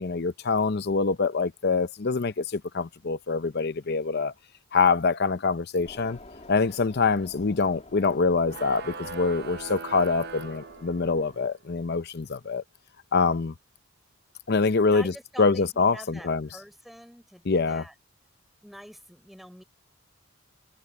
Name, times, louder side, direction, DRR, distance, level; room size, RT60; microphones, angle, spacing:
voice 1, 0.0-4.3 4.7-6.2 6.5-12.6 13.1-13.5 14.5-15.1 15.4-16.5 17.5-17.8, left 4 dB, 50° left, 0.6 m, -25 dB
sound 1, 5.8-11.5, left 2 dB, 35° left, 2.6 m, -49 dB
sound 2, 8.5-11.4, right 4 dB, 50° right, 0.9 m, -40 dB
voice 2, 14.9-17.9 18.6-19.6, equal, ahead, 5.3 m, -45 dB
head